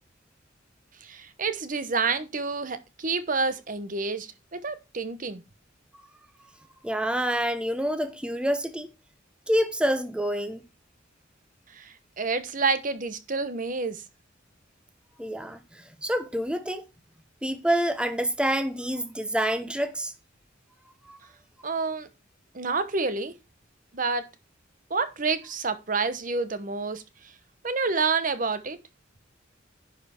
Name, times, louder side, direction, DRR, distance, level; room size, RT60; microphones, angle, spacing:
voice 1, 1.0-5.4 11.8-14.0 21.6-22.1 22.5-23.3 23.9-24.2 24.9-27.0 27.6-28.8, right 4 dB, 45° right, 1.0 m, -28 dB
voice 2, 6.8-8.9 9.5-10.6 15.2-16.8 17.4-20.1 21.1-21.2, equal, 5° right, 0.9 m, -27 dB
10.5 x 5.4 x 4.3 m
head